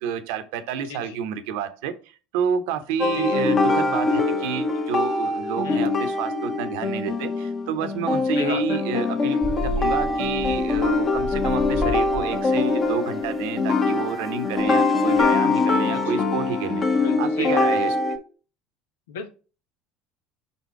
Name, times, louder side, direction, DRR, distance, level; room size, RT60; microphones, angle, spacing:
voice 1, 0.0-1.9 2.3-9.4 9.8-16.8 17.2-17.9, right 7 dB, 70° right, 10 dB, 0.8 m, -29 dB
voice 2, 0.9-1.2 3.1-3.5 5.6-5.9 8.3-8.8 15.9-16.2 17.0-17.8 19.1-19.3, left 5 dB, 75° left, 7 dB, 1.1 m, -34 dB
sound 1, 3.0-18.2, left 3 dB, 35° left, 1.6 m, -23 dB
sound 2, 9.4-16.1, equal, 5° left, 1.4 m, -34 dB
5.3 x 4.3 x 4.4 m, 0.34 s
hypercardioid pair, 70°, 0 cm